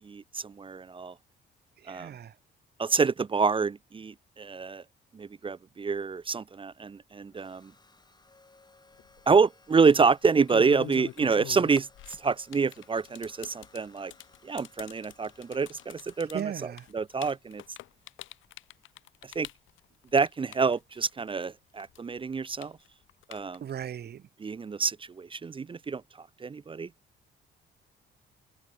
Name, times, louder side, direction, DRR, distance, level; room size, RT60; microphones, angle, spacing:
voice 1, 0.0-1.1 1.9-2.1 2.8-4.8 5.1-7.7 9.3-11.9 12.2-14.1 14.4-16.4 16.9-17.6 19.4-19.5 20.1-22.7 23.3-23.6 24.4-26.9, right 5 dB, 25° right, 0.5 m, -27 dB
voice 2, 1.8-2.3 16.3-16.9 23.6-24.2, right 9 dB, 55° right, 1.3 m, -37 dB
sound 1, 6.2-18.8, left 3 dB, 20° left, 6.8 m, -60 dB
sound 2, 9.0-9.3 10.1-21.4 21.8-23.8, left 15 dB, 80° left, 0.8 m, -45 dB
cardioid pair, 90°, 20 cm